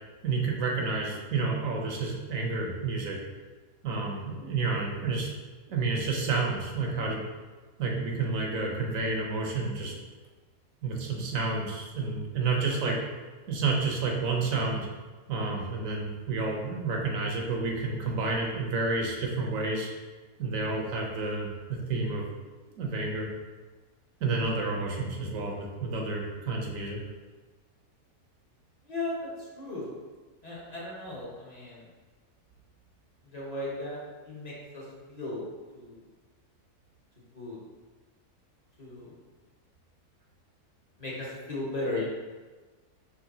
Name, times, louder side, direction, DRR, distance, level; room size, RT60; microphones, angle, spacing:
voice 1, 0.2-3.2 3.8-5.3 5.7-7.2 7.8-9.9 10.8-13.0 13.5-14.9 15.3-19.9 20.4-22.3 22.8-23.3 24.2-27.0, right 3 dB, 65° right, -1 dB, 1.1 m, -30 dB
voice 2, 28.8-29.9 30.4-31.9 33.2-35.4 35.7-36.0 37.3-37.6 38.8-39.2 41.0-42.0, left 2 dB, 30° left, -6 dB, 1.1 m, -36 dB
5.9 x 3.3 x 2.7 m, 1.3 s
omnidirectional pair, 1.6 m